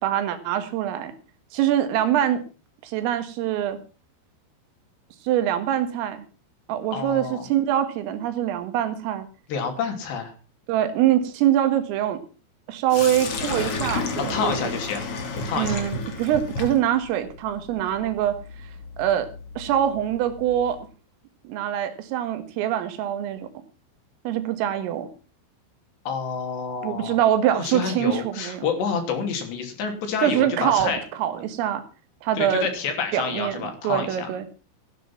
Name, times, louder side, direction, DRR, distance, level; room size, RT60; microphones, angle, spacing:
voice 1, 0.0-1.1 1.5-2.4 2.8-3.8 5.3-6.2 6.7-9.3 10.7-12.2 12.7-14.5 15.5-18.4 19.0-19.3 19.6-20.8 21.5-23.5 24.3-25.1 26.8-28.7 30.2-31.8 32.2-32.7 33.1-34.4, right 11 dB, 90° right, 10 dB, 4.3 m, -24 dB
voice 2, 6.9-7.5 9.5-10.3 14.2-15.0 15.4-15.9 26.1-27.2 27.5-31.0 32.3-34.3, left 5 dB, 60° left, 6 dB, 4.7 m, -28 dB
Sink (filling or washing), 12.9-20.8, left 3 dB, 45° left, 2.2 m, -32 dB
15.5 x 10.0 x 5.8 m, 0.34 s
omnidirectional pair, 5.8 m